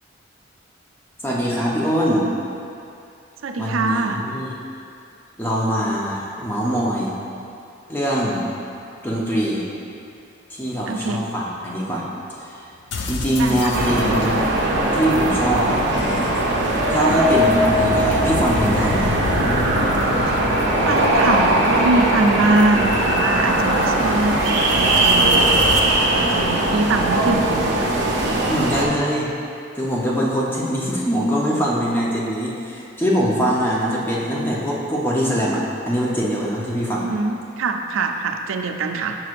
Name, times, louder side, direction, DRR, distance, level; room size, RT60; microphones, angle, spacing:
voice 1, 1.2-2.3 3.6-4.5 5.4-7.1 7.9-8.4 9.0-9.6 10.5-12.1 12.4-12.6 13.1-14.4 14.9-15.8 16.9-19.1 28.5-29.3 29.7-37.1, equal, 10° left, -5 dB, 0.7 m, -22 dB
voice 2, 3.4-4.2 10.9-11.2 13.4-13.7 20.3-20.5 20.8-25.7 26.0-27.9 37.0-39.2, right 3 dB, 90° right, 5 dB, 0.4 m, -23 dB
sound 1, 12.9-25.8, left 2 dB, 60° left, 0.5 m, -30 dB
sound 2, 13.7-28.9, right 1 dB, 60° right, 0.7 m, -19 dB
6.1 x 6.1 x 2.5 m, 2.6 s
head